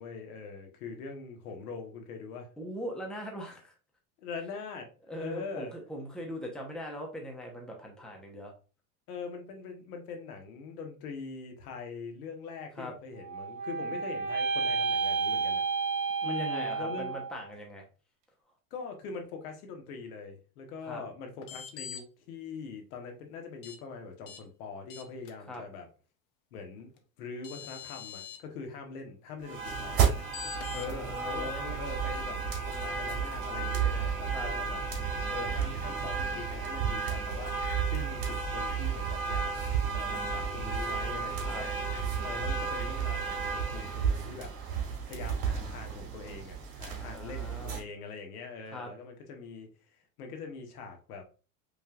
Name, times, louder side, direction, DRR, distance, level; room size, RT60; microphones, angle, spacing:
voice 1, 0.0-2.5 4.2-4.9 5.2-5.7 9.1-15.6 16.2-17.1 18.7-25.9 26.5-26.9 27.2-30.0 30.7-34.8 35.3-37.6 37.9-39.5 39.8-41.7 42.1-44.5 45.1-49.7 50.2-51.3, left 5 dB, 90° left, 1.3 m, -42 dB
voice 2, 2.6-3.7 5.1-8.5 12.7-12.9 16.2-17.8 20.8-21.0 25.5-25.6 30.7-31.8 34.3-34.5 41.4-41.6 47.0-47.8 48.7-48.9, equal, ahead, 0.8 m, -40 dB
sound 1, 13.2-17.5, right 5 dB, 90° right, 1.3 m, -31 dB
sound 2, 21.4-22.0 23.6-23.8 24.3-24.4 24.9-25.3 27.0-27.1 27.4-28.4 30.3-30.9, left 8 dB, 45° left, 0.8 m, -43 dB
sound 3, 29.4-47.8, right 6 dB, 60° right, 2.2 m, -32 dB
5.2 x 3.3 x 2.4 m
supercardioid pair, 140°, 43 cm